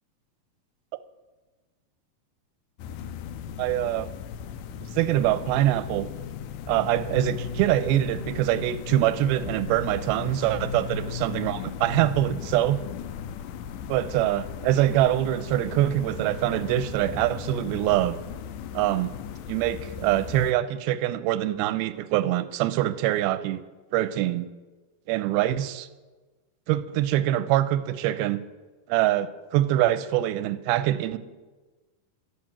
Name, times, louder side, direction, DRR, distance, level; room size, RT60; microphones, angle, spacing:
sound 1, 2.8-20.5, left 8 dB, 80° left, 2.0 m, -36 dB
voice 1, 3.6-4.1 4.8-6.1 6.7-12.8 13.9-18.2 18.7-19.1 19.5-23.6 23.9-24.5 25.1-25.9 26.7-28.4 28.9-31.2, right 13 dB, 85° right, 14 dB, 2.5 m, -24 dB
13.0 x 8.8 x 7.3 m, 1.2 s
omnidirectional pair, 4.3 m